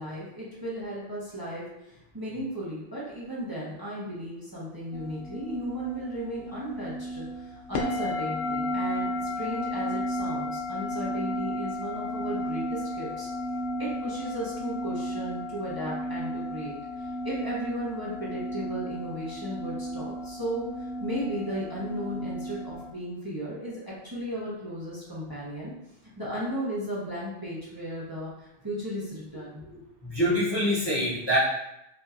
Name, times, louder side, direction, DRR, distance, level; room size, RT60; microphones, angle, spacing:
voice 1, 0.0-9.1 9.4-13.3 13.8-25.7 26.2-29.7, equal, 20° right, -7 dB, 1.0 m, -35 dB
sound 1, 4.9-22.9, left 1 dB, 60° left, 0.6 m, -33 dB
voice 2, 30.0-31.4, equal, 25° left, -9 dB, 0.8 m, -25 dB
5.3 x 2.8 x 2.5 m, 0.85 s
omnidirectional pair, 1.1 m